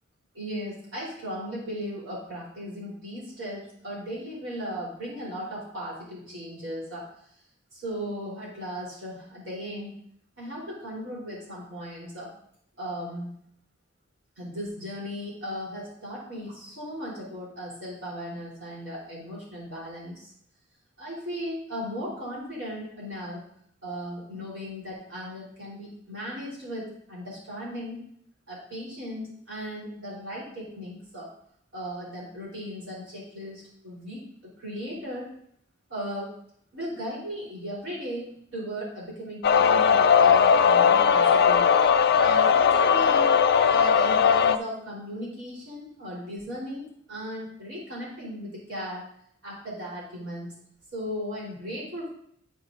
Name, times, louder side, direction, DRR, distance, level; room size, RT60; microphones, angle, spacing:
voice 1, 0.3-7.1 7.8-9.9 10.4-12.3 12.8-13.4 14.4-20.3 21.0-23.4 23.8-28.0 28.5-31.3 31.7-35.3 35.9-36.3 36.7-41.7 42.2-43.4 43.7-49.0 49.4-50.5 50.9-52.1, equal, 75° right, -6 dB, 3.8 m, -36 dB
sound 1, 39.4-44.6, left 7 dB, 55° left, 0.4 m, -19 dB
13.0 x 6.1 x 2.6 m, 0.68 s
head